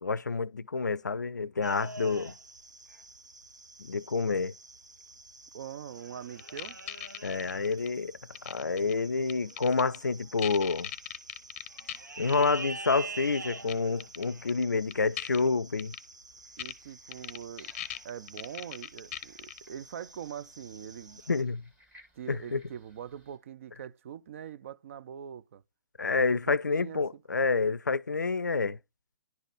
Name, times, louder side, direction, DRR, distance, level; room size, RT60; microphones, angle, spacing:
voice 1, 0.0-2.3 3.8-4.5 7.2-8.2 8.4-10.9 12.2-15.9 21.3-21.6 22.3-22.6 26.0-28.8, left 4 dB, 80° left, 0.4 m, -28 dB
sound 1, 1.6-21.4, right 3 dB, 85° right, 0.8 m, -47 dB
voice 2, 5.5-6.8 16.6-17.7 18.0-21.2 22.2-25.6 26.2-27.2, right 9 dB, 45° right, 0.4 m, -43 dB
sound 2, 6.4-7.9 8.3-8.9 9.3-10.0 10.4-12.0 12.3-12.4 13.7-13.8 14.0-14.6 14.9-15.4 15.8-16.0 16.6-16.7 17.1-19.6, left 11 dB, 35° left, 0.6 m, -39 dB
sound 3, 16.3-23.4, equal, 15° right, 1.9 m, -64 dB
10.5 x 4.0 x 4.8 m
figure-of-eight pair, 125°, 9 cm